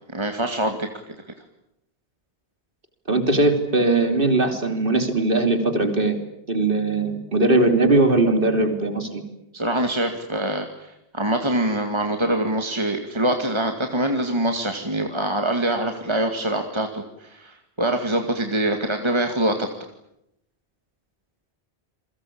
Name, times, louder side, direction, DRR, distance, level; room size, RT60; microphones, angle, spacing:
voice 1, 0.1-0.9 9.5-10.7 11.1-19.7, right 1 dB, 25° right, 4 dB, 2.3 m, -24 dB
voice 2, 3.1-6.2 6.5-9.2, right 2 dB, 55° right, 7 dB, 3.5 m, -20 dB
29.0 x 22.5 x 8.7 m, 0.80 s
omnidirectional pair, 1.1 m